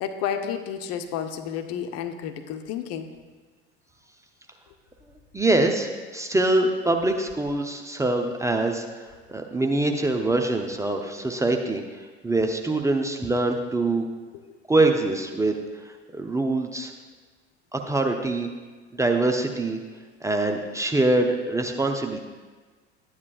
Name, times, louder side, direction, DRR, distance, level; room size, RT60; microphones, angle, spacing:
voice 1, 0.0-3.1, left 8 dB, 45° left, 7 dB, 0.8 m, -31 dB
voice 2, 5.3-14.1 14.7-15.6 15.8-16.9 17.7-18.5 18.9-19.8 20.2-22.2, right 2 dB, 10° right, 3 dB, 0.6 m, -24 dB
12.0 x 9.5 x 2.4 m, 1.4 s
figure-of-eight pair, 70°, 34 cm